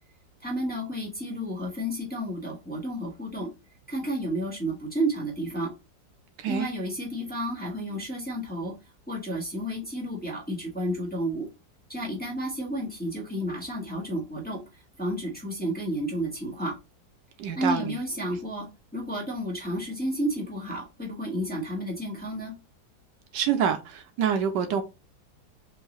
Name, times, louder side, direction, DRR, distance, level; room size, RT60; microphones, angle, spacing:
voice 1, 0.4-3.5 3.9-5.7 6.5-8.7 9.1-11.5 11.9-16.7 17.5-18.7 18.9-22.5, right 1 dB, 5° left, 1.3 m, -31 dB
voice 2, 17.4-18.0 23.3-24.8, right 7 dB, 75° right, 1.2 m, -26 dB
4.7 x 2.6 x 3.0 m
omnidirectional pair, 2.0 m